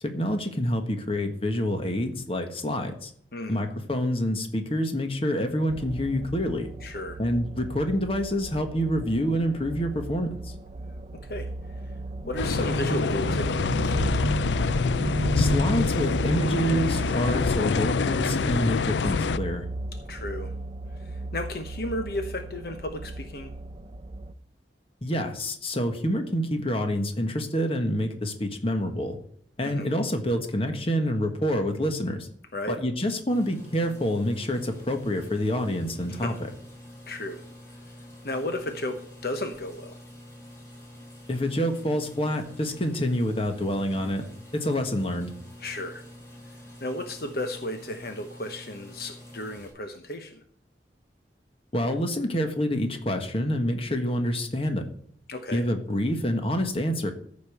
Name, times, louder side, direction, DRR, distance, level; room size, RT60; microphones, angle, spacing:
voice 1, 0.0-3.1 3.5-6.7 7.2-10.5 15.3-19.6 25.0-29.2 29.6-32.3 32.7-36.5 41.3-44.2 44.5-45.3 51.7-54.8 55.5-57.1, equal, 35° left, 6 dB, 1.5 m, -27 dB
sound 1, 5.7-24.3, right 2 dB, 30° right, 0.6 m, -34 dB
voice 2, 6.8-7.2 11.3-11.5 12.2-14.0 20.1-20.5 21.0-23.5 29.6-29.9 32.5-32.8 36.1-36.3 37.1-37.4 38.2-40.0 45.6-46.0 46.8-50.4 55.3-55.6, left 1 dB, 60° left, 6 dB, 1.0 m, -33 dB
sound 2, 12.4-19.4, left 5 dB, 90° left, 0.5 m, -26 dB
sound 3, 33.3-49.7, left 1 dB, 15° left, 4.5 m, -47 dB
14.0 x 5.4 x 6.6 m, 0.62 s
head